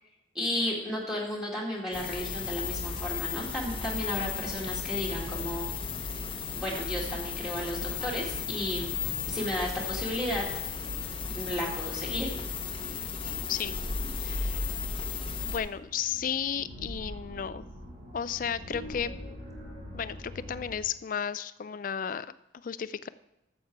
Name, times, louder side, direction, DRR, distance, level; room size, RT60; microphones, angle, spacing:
voice 1, 0.3-5.7 6.5-9.0 9.3-10.5 11.3-12.3, left 1 dB, 5° right, -4 dB, 1.9 m, -33 dB
sound 1, 1.9-15.6, left 5 dB, 25° left, 0.9 m, -34 dB
sound 2, 3.6-20.7, equal, 40° right, 3.5 m, -46 dB
voice 2, 14.2-14.6 15.4-17.7 18.1-19.1 19.9-23.1, left 8 dB, 45° left, 16 dB, 0.3 m, -33 dB
13.0 x 7.4 x 4.5 m, 0.87 s
head